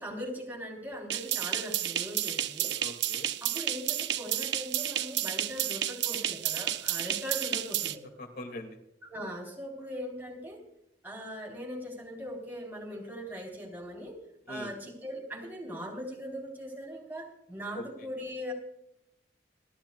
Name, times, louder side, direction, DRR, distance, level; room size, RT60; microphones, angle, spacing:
voice 1, 0.0-2.7 3.4-8.0 9.0-10.6 11.0-14.2 14.5-18.5, equal, 10° right, -1 dB, 4.1 m, -40 dB
sound 1, 1.1-7.9, right 12 dB, 80° right, 0.7 m, -31 dB
voice 2, 2.8-3.3 8.2-8.8 14.5-14.7 17.7-18.1, left 1 dB, 55° left, 5 dB, 2.4 m, -42 dB
28.0 x 12.0 x 2.4 m, 0.80 s
head